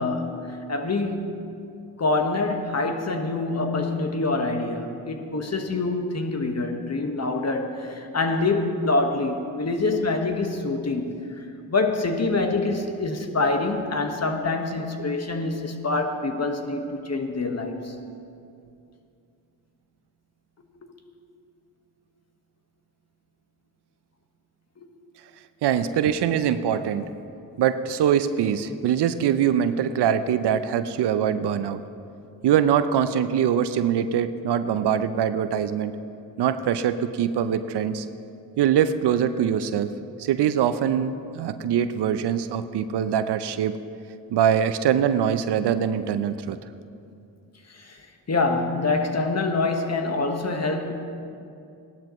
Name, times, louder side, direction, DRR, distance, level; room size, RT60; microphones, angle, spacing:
voice 1, 0.0-1.3 2.0-17.9 20.8-21.0 24.8-24.9 47.7-50.9, left 3 dB, 35° left, 5 dB, 1.4 m, -26 dB
voice 2, 25.6-27.1 27.6-31.8 32.4-35.9 36.4-38.1 38.6-39.9 40.2-43.8 44.3-46.6, right 9 dB, 65° right, 12 dB, 0.6 m, -23 dB
16.5 x 12.0 x 3.1 m, 2.5 s
supercardioid pair, 45°, 44 cm